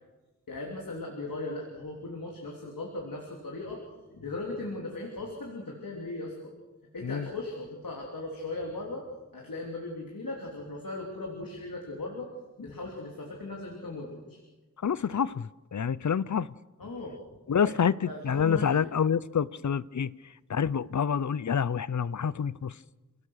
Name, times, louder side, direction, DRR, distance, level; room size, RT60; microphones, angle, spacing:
voice 1, 0.5-3.8 4.1-6.5 6.9-9.1 9.3-12.3 12.6-14.4 16.8-17.2 17.6-17.8 18.1-18.9, left 2 dB, 90° left, 3.3 m, -38 dB
voice 2, 14.8-16.5 17.5-17.9 18.2-20.1 20.5-22.7, left 7 dB, 60° left, 0.6 m, -27 dB
29.0 x 18.0 x 6.4 m
wide cardioid pair, 85°, 33 cm